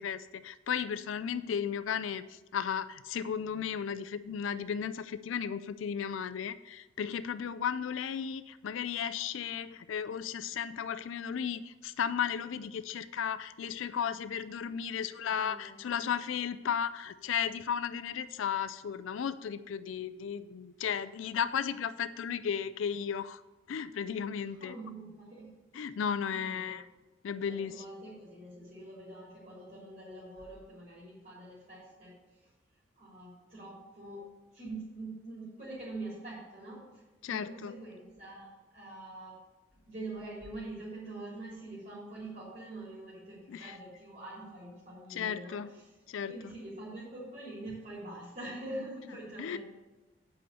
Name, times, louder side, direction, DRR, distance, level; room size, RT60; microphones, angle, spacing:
voice 1, 0.0-23.4 23.7-24.8 25.7-26.8 27.2-27.7 37.2-37.7 43.5-43.7 45.1-45.7 46.1-46.3 49.4-49.6, left 7 dB, 80° left, 13 dB, 0.4 m, -34 dB
voice 2, 1.2-1.5 15.1-16.0 24.6-25.5 26.3-26.8 27.5-32.1 33.0-34.2 34.5-39.4 39.9-45.9 46.3-49.6, right 2 dB, 40° right, -7 dB, 3.6 m, -45 dB
8.4 x 5.6 x 6.8 m, 1.2 s
head